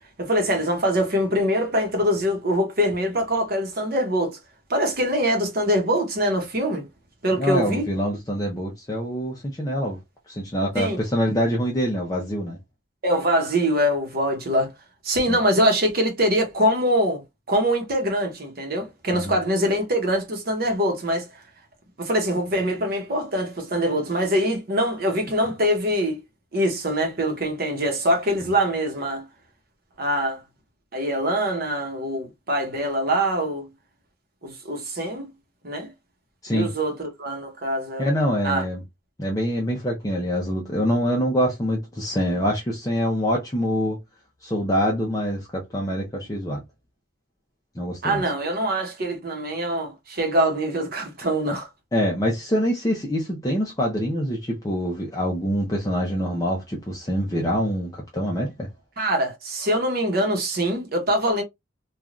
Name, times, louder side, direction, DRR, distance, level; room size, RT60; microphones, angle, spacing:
voice 1, 0.2-4.4 4.7-6.8 7.2-7.9 10.7-11.0 13.0-14.7 15.0-17.2 17.5-21.2 22.0-26.2 26.5-29.2 30.0-30.4 30.9-33.7 34.4-35.3 35.6-35.9 36.5-38.1 38.4-38.6 48.0-51.7 59.0-61.4, equal, 55° right, 0.9 m, -23 dB
voice 2, 7.4-10.0 10.3-12.6 15.3-15.4 19.1-19.3 28.4-28.5 36.4-36.7 38.0-38.8 39.2-44.0 44.4-46.6 47.8-48.2 51.9-58.7, equal, 20° left, 0.6 m, -25 dB
3.2 x 2.4 x 2.4 m
head